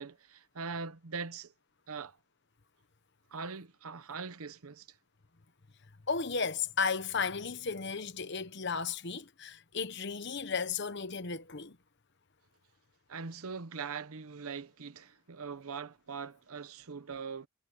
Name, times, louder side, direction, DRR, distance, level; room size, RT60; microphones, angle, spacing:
voice 1, 0.0-1.5 1.9-2.2 3.3-4.9 13.1-17.5, right 5 dB, 80° right, 0.9 m, -41 dB
voice 2, 6.1-11.8, left 5 dB, 50° left, 1.1 m, -34 dB
head